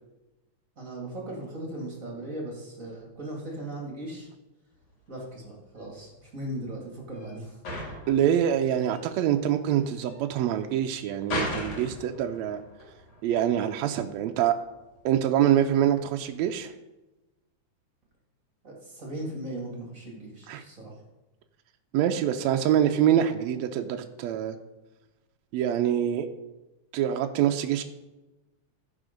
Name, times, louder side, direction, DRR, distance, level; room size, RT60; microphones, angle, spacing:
voice 1, 0.8-4.3 5.1-7.6 18.6-21.0, right 1 dB, 30° right, -2 dB, 2.0 m, -38 dB
sound 1, 4.7-16.6, left 1 dB, 55° left, 3.8 m, -39 dB
voice 2, 8.1-12.6 13.2-14.6 15.1-16.7 20.5-20.6 21.9-24.6 25.5-26.3 26.9-27.8, right 10 dB, 75° right, 6 dB, 1.8 m, -25 dB
15.0 x 5.0 x 5.1 m, 1.1 s
omnidirectional pair, 3.3 m